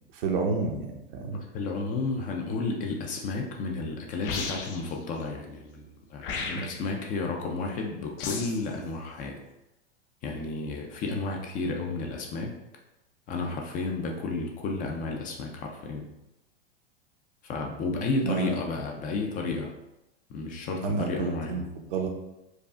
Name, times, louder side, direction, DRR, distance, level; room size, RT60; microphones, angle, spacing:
voice 1, 0.1-0.9 1.1-1.4 6.5-6.7 18.2-18.6 20.8-22.1, right 4 dB, 60° right, 2 dB, 0.8 m, -30 dB
voice 2, 1.3-9.4 10.2-12.6 13.3-16.1 17.4-19.7 20.3-21.6, left 3 dB, 25° left, 1 dB, 0.4 m, -32 dB
sound 1, 4.2-4.9 6.2-6.9 8.2-8.7, left 5 dB, 60° left, 0.7 m, -34 dB
4.8 x 2.4 x 2.4 m, 0.92 s
hypercardioid pair, 120°, 31 cm